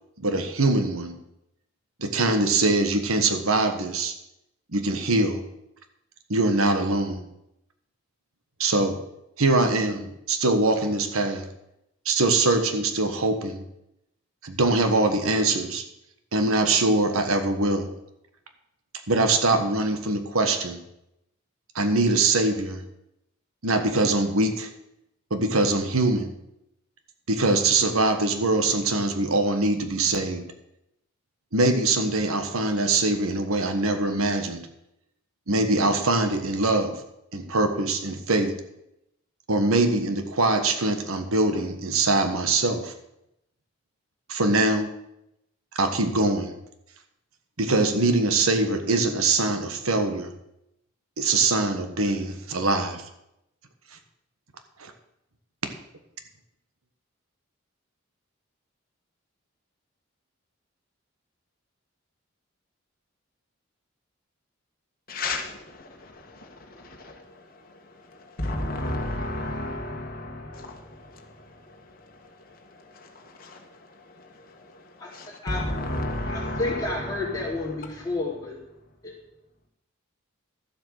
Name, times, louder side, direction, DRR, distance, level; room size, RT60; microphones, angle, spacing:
voice 1, 0.2-1.2 2.0-4.1 4.7-5.4 6.3-7.3 8.6-9.0 9.4-11.5 12.0-13.6 14.4-15.8 16.3-17.9 19.1-20.8 21.7-22.8 23.6-24.7 25.3-26.3 27.3-30.4 31.5-34.7 35.5-37.0 37.3-38.6 39.5-42.9 44.3-44.9 45.7-46.5 47.6-50.3 51.2-53.0 54.8-54.9, right 2 dB, 80° right, 1.4 m, -23 dB
voice 2, 65.1-78.1, left 1 dB, 40° left, 1.6 m, -34 dB
voice 3, 75.0-75.6 76.3-78.6 79.0-79.1, left 2 dB, 15° left, 3.5 m, -31 dB
12.5 x 7.7 x 6.5 m
head